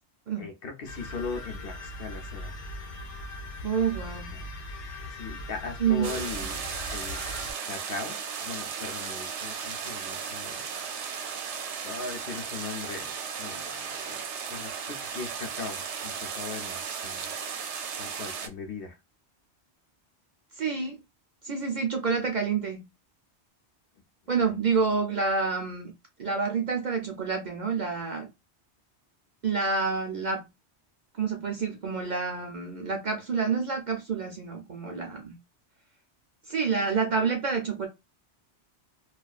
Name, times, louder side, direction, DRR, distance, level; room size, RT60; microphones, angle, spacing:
voice 1, 0.4-2.6 4.3-4.5 5.1-6.6 6.9-7.2 7.7-10.8 11.8-13.1 13.4-14.2 14.5-17.3 18.0-19.0 24.3-24.5, left 4 dB, 60° left, 0.8 m, -39 dB
sound 1, 0.8-7.5, left 2 dB, 90° left, 1.0 m, -40 dB
voice 2, 3.6-4.3 5.8-6.3 20.6-21.0 21.4-22.9 24.3-25.9 26.2-28.3 29.4-30.5 31.2-35.3 36.5-37.9, right 5 dB, 55° right, 0.5 m, -28 dB
sound 2, 6.0-18.5, right 6 dB, 80° right, 0.9 m, -35 dB
2.4 x 2.2 x 2.3 m
omnidirectional pair, 1.2 m